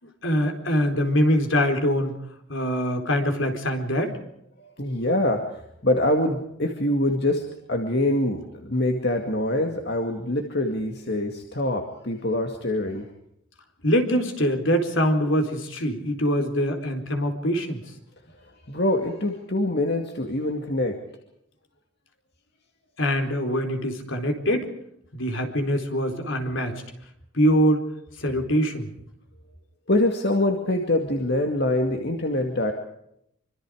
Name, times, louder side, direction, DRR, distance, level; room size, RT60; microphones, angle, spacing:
voice 1, 0.2-2.2 2.5-4.2 13.8-17.8 23.0-24.7 25.1-26.8 27.3-27.8 28.2-28.9, equal, 65° left, 4 dB, 4.3 m, -23 dB
voice 2, 4.6-13.1 18.4-21.0 29.9-32.7, left 1 dB, 50° left, 3 dB, 2.4 m, -25 dB
26.0 x 25.5 x 5.0 m, 0.75 s
head